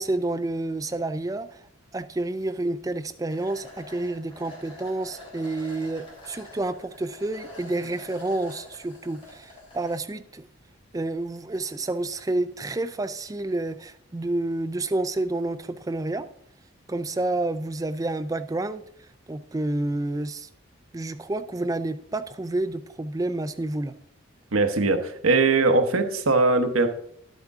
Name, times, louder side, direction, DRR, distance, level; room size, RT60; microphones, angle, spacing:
voice 1, 0.0-1.7 1.9-10.5 10.9-16.3 16.9-18.8 19.3-20.5 20.9-24.0, right 2 dB, 15° right, 0.3 m, -29 dB
sound 1, 3.3-10.0, left 2 dB, 25° left, 3.2 m, -46 dB
voice 2, 24.5-26.9, right 3 dB, 80° right, 1.0 m, -21 dB
11.0 x 8.1 x 3.6 m
head